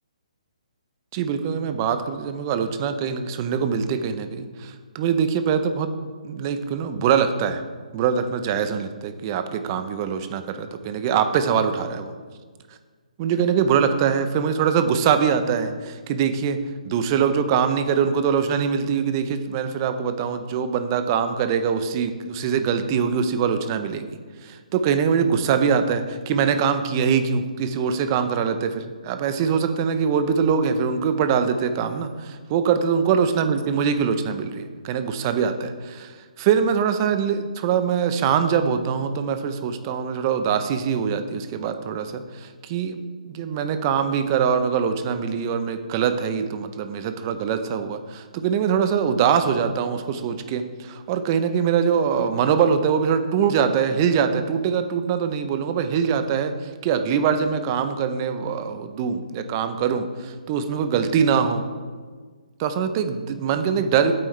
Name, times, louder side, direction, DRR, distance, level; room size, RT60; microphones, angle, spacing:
voice 1, 1.1-5.9 6.2-7.6 7.9-12.1 13.2-61.6 62.6-64.1, right 7 dB, 30° right, 9 dB, 0.7 m, -23 dB
11.0 x 8.7 x 3.3 m, 1.5 s
hypercardioid pair, 155°, 4 cm